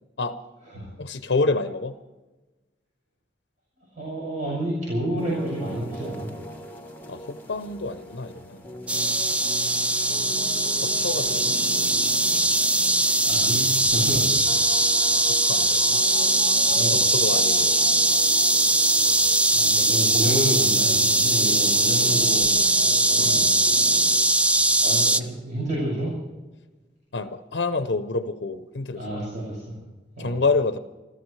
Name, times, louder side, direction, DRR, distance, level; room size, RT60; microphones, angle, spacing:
voice 1, 1.0-2.0 7.1-8.6 10.8-11.6 15.3-16.0 16.7-17.7 19.0-19.4 19.7-20.2 23.2-23.3 24.8-25.3 27.1-29.2 30.2-30.8, left 3 dB, 75° left, 9 dB, 0.7 m, -28 dB
voice 2, 3.9-6.3 13.0-14.6 15.6-15.7 16.7-17.0 19.5-22.5 23.1-23.5 24.8-26.1 28.9-29.7 30.2-30.3, right 1 dB, 45° right, -6 dB, 6.2 m, -29 dB
sound 1, 5.2-24.3, equal, 10° left, 1.5 m, -40 dB
sound 2, 8.9-25.2, right 2 dB, 5° right, 0.4 m, -21 dB
29.0 x 13.5 x 3.3 m, 1.2 s
head